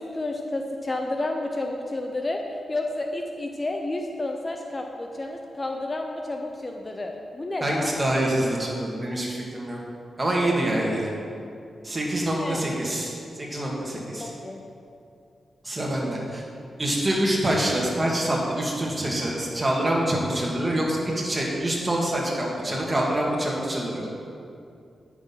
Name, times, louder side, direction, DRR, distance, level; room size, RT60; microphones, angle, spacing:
voice 1, 0.0-2.4 2.7-8.0 10.6-11.0 12.3-12.6 14.2-14.6, left 2 dB, 25° left, 3 dB, 0.7 m, -31 dB
voice 2, 7.6-9.8 10.2-11.1 11.8-14.3 15.6-16.4 16.8-24.0, right 1 dB, 25° right, -3 dB, 2.1 m, -26 dB
9.8 x 6.5 x 5.6 m, 2.5 s
cardioid pair, 90°, 0 cm